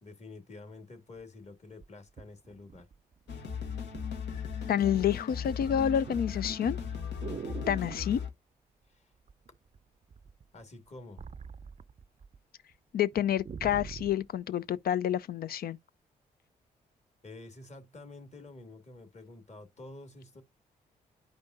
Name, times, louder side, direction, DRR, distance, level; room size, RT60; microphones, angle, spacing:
voice 1, 0.0-2.9 8.9-9.1 10.5-11.3 17.2-20.4, left 2 dB, 35° left, 2.3 m, -49 dB
sound 1, 1.8-3.3 3.9-4.2 4.5-5.0 5.3-8.2 9.3-9.8 10.1-12.4 12.7-12.8 13.1-14.3 14.9-15.0, right 6 dB, 35° right, 0.5 m, -44 dB
sound 2, 3.3-8.3, left 6 dB, 70° left, 1.3 m, -37 dB
voice 2, 4.7-6.8 7.7-8.2 12.9-15.8, left 9 dB, 55° left, 0.4 m, -28 dB
10.5 x 5.1 x 2.6 m
hypercardioid pair, 40°, 19 cm